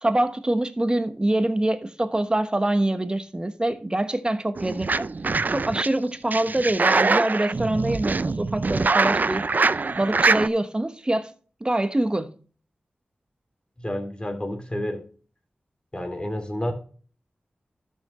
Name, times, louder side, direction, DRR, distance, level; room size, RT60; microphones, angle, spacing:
voice 1, 0.0-5.1 5.5-9.4 10.0-11.3 11.6-12.3, right 1 dB, 25° right, 1.2 m, -24 dB
sound 1, 4.6-5.9 6.3-10.5, right 4 dB, 55° right, 0.5 m, -23 dB
voice 2, 13.8-15.0 15.9-16.7, left 1 dB, 25° left, 2.8 m, -30 dB
12.5 x 6.8 x 3.1 m
cardioid pair, 40°, 4 cm